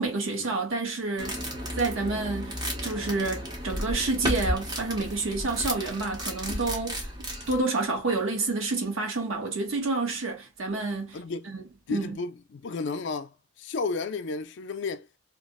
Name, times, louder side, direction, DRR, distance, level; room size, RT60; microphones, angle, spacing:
voice 1, 0.0-1.4 1.8-11.2 11.5-11.6 11.9-12.2, right 3 dB, 85° right, 0.9 m, -29 dB
sound 1, 1.2-7.6, equal, 20° right, 0.8 m, -33 dB
voice 2, 11.1-11.5 11.9-15.1, left 4 dB, 65° left, 0.4 m, -33 dB
2.4 x 2.0 x 3.5 m
head